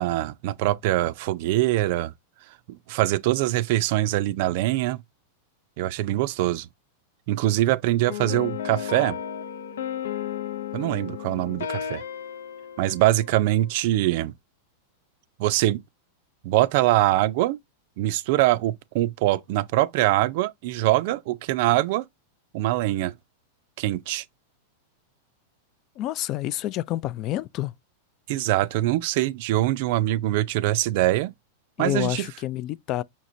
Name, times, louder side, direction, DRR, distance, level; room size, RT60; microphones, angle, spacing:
voice 1, 0.0-2.1 2.7-5.0 5.8-6.7 7.3-9.2 10.7-12.0 12.8-14.3 15.4-15.8 16.4-17.6 18.0-22.0 22.5-23.1 23.8-24.2 28.3-31.3 31.8-32.3, right 15 dB, 60° right, 0.4 m, -23 dB
sound 1, 8.1-13.7, left 9 dB, 85° left, 0.6 m, -34 dB
voice 2, 26.0-27.7 31.8-33.0, left 14 dB, 45° left, 0.3 m, -28 dB
5.6 x 3.0 x 2.5 m
hypercardioid pair, 115°, 0 cm